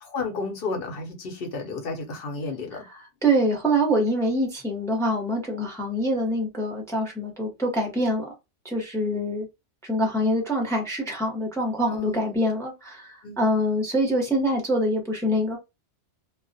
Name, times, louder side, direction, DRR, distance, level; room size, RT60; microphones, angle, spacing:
voice 1, 0.0-2.9 11.9-12.4 13.2-13.4, left 3 dB, 55° left, 0.9 m, -32 dB
voice 2, 3.2-8.2 8.6-9.5 9.9-15.6, equal, 5° left, 0.5 m, -25 dB
2.3 x 2.1 x 2.5 m
omnidirectional pair, 1.2 m